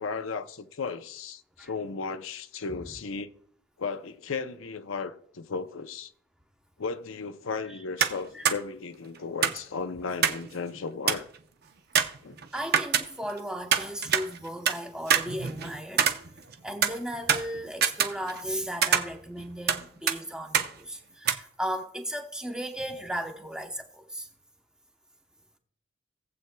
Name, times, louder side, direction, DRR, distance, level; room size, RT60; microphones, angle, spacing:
voice 1, 0.0-3.3 3.8-6.1 6.8-11.3 12.2-12.4, left 4 dB, 80° left, 0.6 m, -35 dB
sound 1, 8.0-8.2 8.5-8.6 9.4-10.5 10.7-10.8 11.1-11.4 12.0-13.4 13.7-14.8 15.1-16.5 16.8-18.5 18.8-19.8 20.1-20.2 20.5-20.7 21.3-21.4, right 7 dB, 50° right, 0.7 m, -25 dB
voice 2, 12.5-16.1 16.6-24.3, equal, 5° right, 0.9 m, -36 dB
18.0 x 7.8 x 2.3 m
head